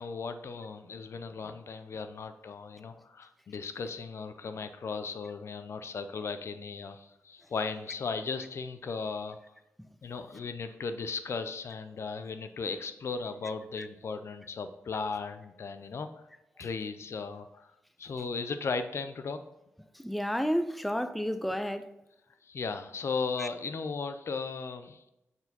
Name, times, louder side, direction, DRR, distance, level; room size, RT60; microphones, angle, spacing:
voice 1, 0.0-9.4 10.0-16.1 16.6-17.7 18.0-19.4 22.4-25.1, left 4 dB, 65° left, 0.6 m, -36 dB
voice 2, 20.0-21.9 23.4-23.5, equal, ahead, 0.4 m, -31 dB
6.7 x 4.5 x 4.0 m
cardioid pair, 75°, 5 cm